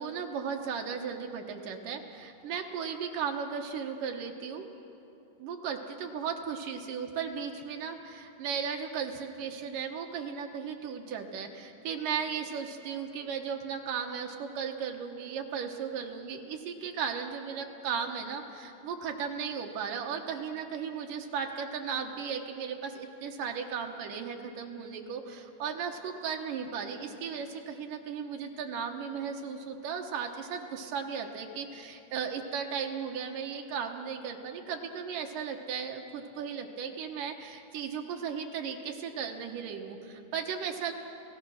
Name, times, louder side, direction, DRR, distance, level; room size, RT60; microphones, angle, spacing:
voice 1, 0.0-4.7 5.4-40.9, right 6 dB, 65° right, 3 dB, 2.3 m, -36 dB
28.5 x 17.0 x 6.4 m, 2.9 s
omnidirectional pair, 5.0 m